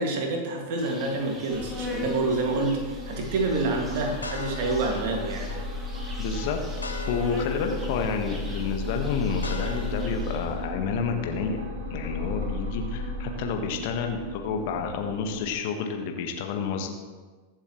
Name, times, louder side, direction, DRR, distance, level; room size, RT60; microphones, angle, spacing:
voice 1, 0.0-5.6, right 2 dB, 50° right, 2 dB, 2.3 m, -27 dB
Insect, 0.8-10.6, left 1 dB, 15° right, 1.9 m, -41 dB
sound 1, 1.5-15.5, left 2 dB, 65° right, 2.7 m, -35 dB
sound 2, 3.0-3.1 3.6-9.9, left 3 dB, 75° left, 1.1 m, -42 dB
voice 2, 6.2-6.6 7.1-11.6 11.9-16.9, left 5 dB, 50° left, 3 dB, 1.5 m, -29 dB
22.0 x 7.5 x 3.2 m, 1.4 s
figure-of-eight pair, 90°, 0 cm